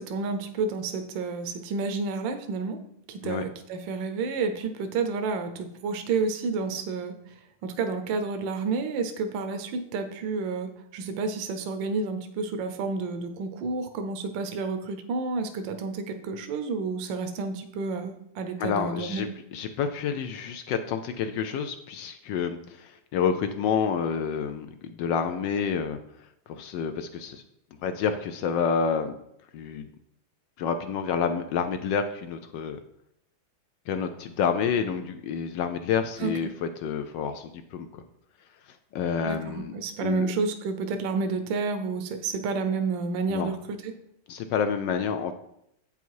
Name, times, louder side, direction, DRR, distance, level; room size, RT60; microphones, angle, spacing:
voice 1, 0.0-2.8 3.1-7.1 7.6-19.3 36.2-36.3 39.2-43.9, right 4 dB, 70° right, 7 dB, 1.3 m, -30 dB
voice 2, 18.6-26.0 26.5-27.4 27.8-29.1 29.5-29.9 30.6-32.8 33.9-38.0 38.9-39.7 40.0-40.3 43.3-43.5 44.3-45.3, left 6 dB, 75° left, 8 dB, 1.1 m, -29 dB
8.1 x 5.5 x 4.6 m, 0.78 s
omnidirectional pair, 2.2 m